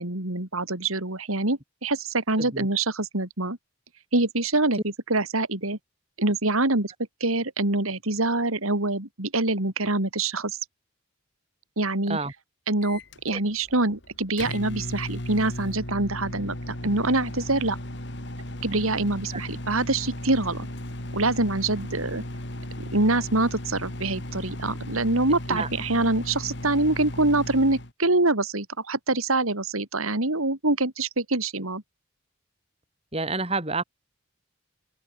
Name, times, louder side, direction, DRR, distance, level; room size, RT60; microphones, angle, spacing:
voice 1, 0.0-3.6 4.1-4.8 5.1-5.8 6.2-6.9 7.2-10.6 11.8-12.2 12.7-17.8 18.6-20.7 21.1-22.2 22.9-31.8, right 2 dB, 80° right, 3.6 m, -25 dB
Microwave oven, 12.8-27.9, left 1 dB, 55° left, 3.9 m, -36 dB
voice 2, 33.1-33.8, right 3 dB, 30° right, 5.6 m, -29 dB
open air
head